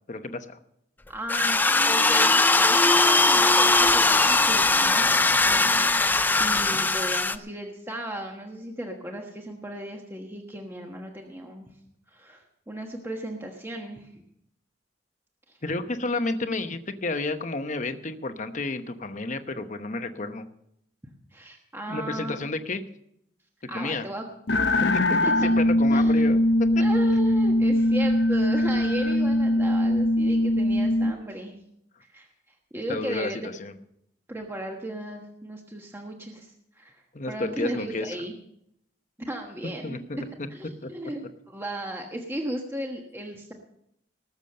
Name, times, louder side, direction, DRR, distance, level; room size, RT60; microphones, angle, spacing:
voice 1, 0.1-0.6 6.4-6.8 15.6-20.5 21.9-22.8 23.7-24.1 25.4-26.8 32.9-33.7 37.1-38.1 39.8-40.2 40.8-40.9, left 2 dB, 40° left, 9 dB, 1.0 m, -31 dB
voice 2, 1.1-11.7 12.1-14.1 15.5-15.6 21.3-22.5 23.7-24.2 25.2-25.5 25.9-26.2 26.8-31.5 32.1-33.4 34.3-38.3 39.3-40.0 40.5-41.2 41.5-43.5, right 1 dB, 10° right, 1 dB, 1.3 m, -36 dB
sound 1, 1.3-7.4, left 3 dB, 10° left, 0.4 m, -20 dB
sound 2, 24.5-31.1, left 1 dB, 65° left, 0.8 m, -21 dB
19.5 x 7.1 x 6.7 m, 0.75 s
head